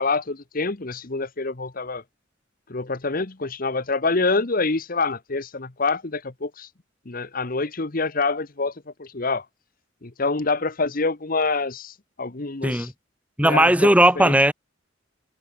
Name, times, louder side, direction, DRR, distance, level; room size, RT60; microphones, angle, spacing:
voice 1, 0.0-2.0 2.7-6.7 7.1-8.7 9.0-9.4 10.0-12.9 13.4-13.9 14.2-14.3, left 3 dB, 45° left, 1.2 m, -26 dB
voice 2, 13.4-14.5, right 1 dB, 5° right, 2.6 m, -17 dB
head